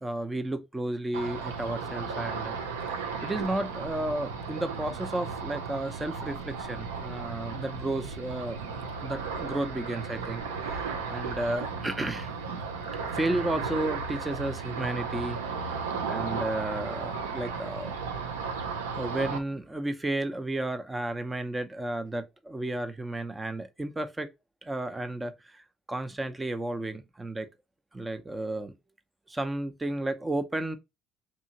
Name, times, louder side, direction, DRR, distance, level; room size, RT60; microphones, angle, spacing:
voice 1, 0.0-2.5 3.2-8.6 9.0-12.3 13.0-15.8 16.1-17.9 18.9-24.3 24.6-27.5 27.9-28.7 29.3-30.8, right 1 dB, 20° right, 0.6 m, -33 dB
Ocean, 1.1-19.4, right 5 dB, 90° right, 0.4 m, -35 dB
2.8 x 2.7 x 2.7 m
hypercardioid pair, 55°, 0 cm